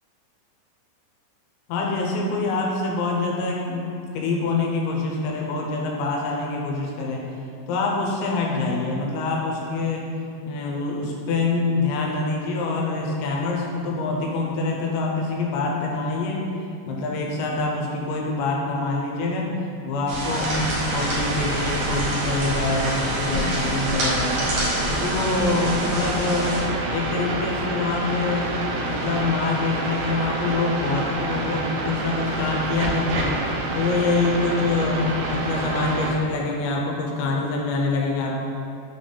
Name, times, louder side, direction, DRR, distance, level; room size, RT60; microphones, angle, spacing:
voice 1, 1.7-3.9 4.1-7.3 7.7-10.1 10.5-16.5 16.9-19.5 19.9-24.5 24.9-26.6 26.9-28.5 28.8-33.4 33.8-38.4, left 3 dB, 85° left, -1 dB, 2.9 m, -25 dB
sound 1, 20.1-26.6, equal, 65° right, 1.9 m, -27 dB
sound 2, 20.2-36.1, right 2 dB, 90° right, 2.1 m, -28 dB
6.6 x 3.8 x 3.8 m, 2.5 s
omnidirectional pair, 5.2 m